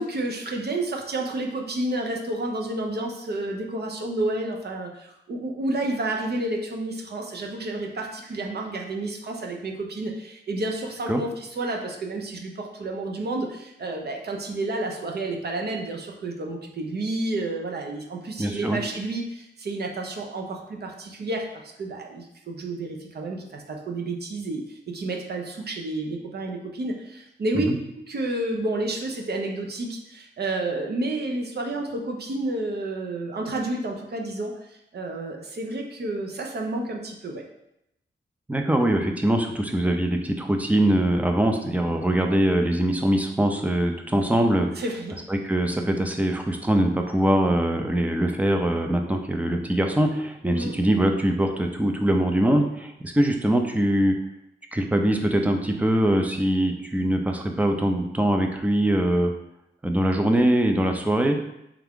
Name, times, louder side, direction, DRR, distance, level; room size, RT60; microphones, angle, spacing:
voice 1, 0.0-21.4 21.8-27.7 28.1-37.4 44.8-45.1 50.5-50.7, right 2 dB, 55° right, 1 dB, 0.7 m, -30 dB
voice 2, 18.4-18.8 27.5-27.8 38.5-44.8 45.3-54.1 54.7-59.3 59.8-61.4, right 1 dB, 5° right, 4 dB, 0.4 m, -22 dB
3.5 x 3.4 x 3.6 m, 0.83 s
wide cardioid pair, 125°, 20 cm